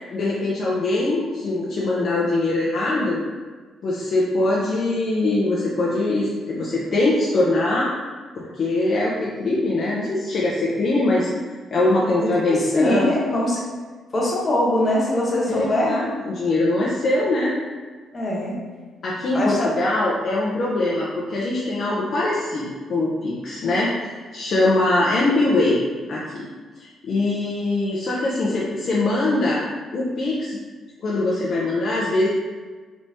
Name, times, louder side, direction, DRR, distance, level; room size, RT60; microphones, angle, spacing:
voice 1, 0.1-3.2 3.8-7.9 8.4-11.3 11.7-13.1 15.6-17.6 19.0-23.9 24.3-25.8 26.1-26.5 26.8-29.6 29.9-30.6 31.0-32.3, left 2 dB, 55° left, -5 dB, 0.5 m, -22 dB
voice 2, 12.1-13.6 14.1-16.0 18.1-18.5 19.3-19.7, left 1 dB, 30° left, -5 dB, 1.0 m, -22 dB
3.3 x 3.0 x 2.7 m, 1.4 s
cardioid pair, 90°, 0 cm